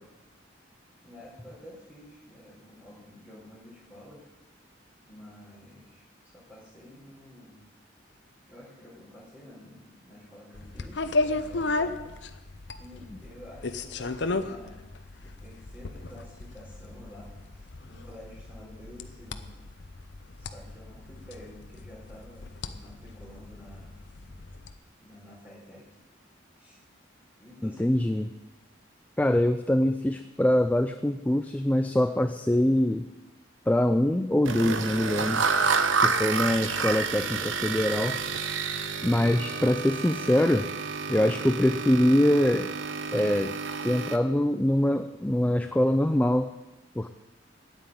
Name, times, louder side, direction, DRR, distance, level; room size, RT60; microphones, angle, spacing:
voice 1, 1.0-4.3 5.1-7.6 8.5-14.9 15.2-19.5 20.4-24.3 25.0-25.8 26.6-26.8 27.4-27.9, left 1 dB, 10° right, -5 dB, 4.5 m, -50 dB
sound 1, 10.5-24.7, left 3 dB, 60° left, 0.7 m, -35 dB
voice 2, 27.6-28.3 29.2-33.0 33.7-35.4 36.0-38.2 39.0-40.7 41.1-42.7 43.1-43.6 43.8-46.5 47.0-47.1, left 1 dB, 10° left, 8 dB, 0.3 m, -24 dB
sound 2, 34.4-44.2, right 5 dB, 75° right, 0.9 m, -29 dB
9.3 x 9.1 x 9.0 m, 1.1 s
head